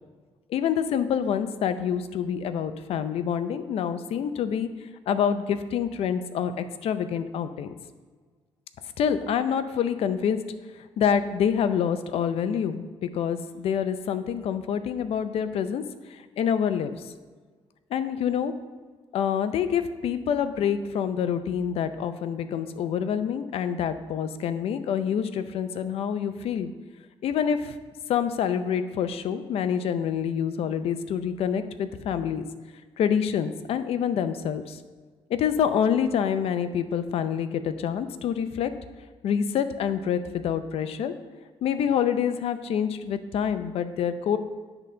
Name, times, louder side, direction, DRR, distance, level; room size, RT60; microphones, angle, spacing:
voice 1, 0.5-4.7 5.1-7.7 9.0-10.4 11.0-15.8 16.1-17.1 17.9-18.5 19.1-26.7 27.2-27.8 28.1-32.4 33.0-34.8 35.3-38.7 39.2-41.1 41.6-44.4, left 8 dB, 75° left, 11 dB, 0.5 m, -27 dB
10.5 x 3.9 x 5.5 m, 1.5 s
cardioid pair, 115°, 10 cm